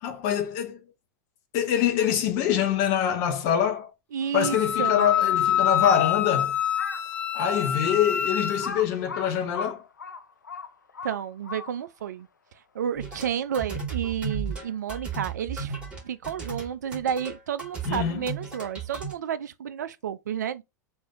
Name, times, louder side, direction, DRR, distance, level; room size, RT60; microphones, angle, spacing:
voice 1, 0.0-0.8 1.5-3.9 4.3-6.6 7.3-9.8 17.9-18.2, left 9 dB, 45° left, 0.8 m, -25 dB
voice 2, 4.1-5.3 11.0-12.3 12.7-15.8 16.0-20.6, right 8 dB, 65° right, 0.4 m, -31 dB
Wind instrument woodwind instrument, 4.4-8.7, left 10 dB, 15° left, 0.5 m, -26 dB
Crow, 6.6-7.1 7.7-7.8 8.6-12.0, left 5 dB, 75° left, 0.5 m, -37 dB
sound 1, 13.0-19.1, right 5 dB, 10° right, 1.8 m, -35 dB
3.4 x 2.6 x 3.6 m
figure-of-eight pair, 90°, 10 cm